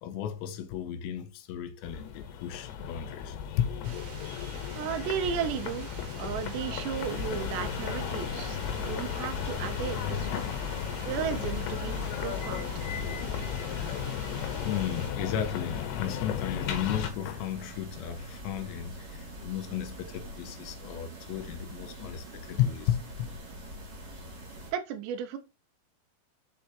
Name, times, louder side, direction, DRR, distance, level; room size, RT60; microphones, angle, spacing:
voice 1, 0.0-4.0 9.6-10.8 12.0-12.2 13.8-13.9 14.6-23.3, left 10 dB, 85° left, 3.0 m, -34 dB
sound 1, 1.8-17.1, left 8 dB, 70° left, 2.8 m, -35 dB
sound 2, 3.8-15.1, right 6 dB, 60° right, 3.1 m, -48 dB
voice 2, 4.8-10.4 11.0-12.7 24.7-25.4, right 8 dB, 75° right, 2.9 m, -34 dB
sound 3, 7.0-24.7, equal, 35° right, 4.0 m, -44 dB
6.7 x 4.7 x 4.5 m
omnidirectional pair, 5.2 m